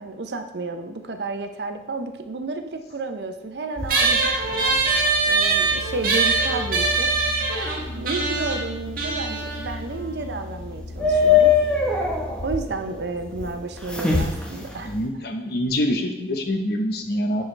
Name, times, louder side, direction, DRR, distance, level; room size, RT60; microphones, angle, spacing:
voice 1, 0.0-4.8 5.3-7.1 8.0-11.5 12.4-15.0, right 3 dB, 70° right, 7 dB, 0.6 m, -31 dB
sound 1, 3.8-15.1, left 5 dB, 5° left, 1.0 m, -26 dB
sound 2, 3.9-10.7, right 4 dB, 50° right, 1.4 m, -23 dB
voice 2, 14.7-17.4, equal, 60° left, 5 dB, 0.9 m, -25 dB
10.0 x 4.7 x 3.3 m, 0.96 s
head